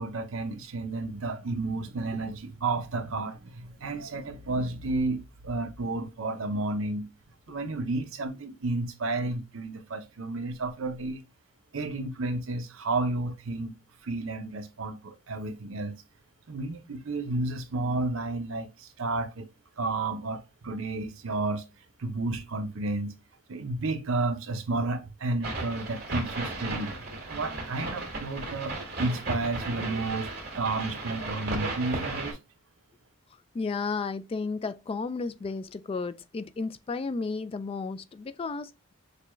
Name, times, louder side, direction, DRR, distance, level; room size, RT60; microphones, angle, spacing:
voice 1, 0.0-7.1 7.5-11.2 11.7-13.7 14.0-16.0 16.5-19.5 19.8-21.7 22.0-23.2 23.5-26.9 27.3-32.4, right 2 dB, 70° right, 0.7 m, -31 dB
sound 1, 25.4-32.3, right 2 dB, 50° right, 2.0 m, -35 dB
voice 2, 33.5-38.9, left 4 dB, 25° left, 0.3 m, -33 dB
6.6 x 2.3 x 3.0 m
head